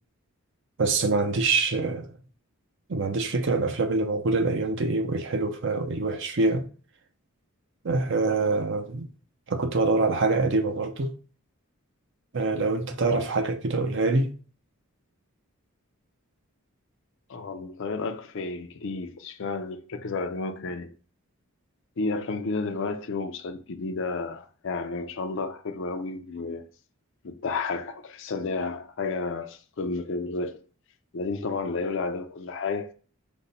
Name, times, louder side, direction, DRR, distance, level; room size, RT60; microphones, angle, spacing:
voice 1, 0.8-2.1 2.9-6.7 7.8-9.1 9.5-11.1 12.3-14.3, right 3 dB, 55° right, 0.6 m, -25 dB
voice 2, 17.3-20.9 22.0-26.6 27.2-30.6 31.1-32.9, left 3 dB, 55° left, 0.5 m, -31 dB
5.2 x 2.2 x 4.0 m
head